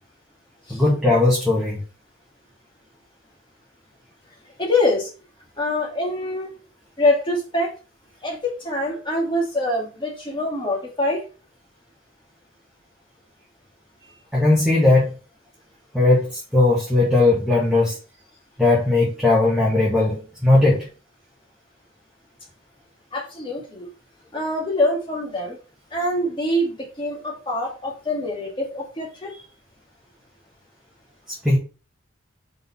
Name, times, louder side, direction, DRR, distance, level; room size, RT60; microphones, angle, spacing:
voice 1, 0.7-1.8 14.3-15.1 15.9-18.0 18.6-20.9 31.4-31.6, left 2 dB, ahead, -6 dB, 1.9 m, -18 dB
voice 2, 4.6-5.1 5.6-6.5 7.0-7.7 8.2-11.2 23.1-23.9 24.3-25.6 25.9-29.4, left 1 dB, 25° left, -2 dB, 2.2 m, -24 dB
5.4 x 4.1 x 5.5 m, 0.34 s
head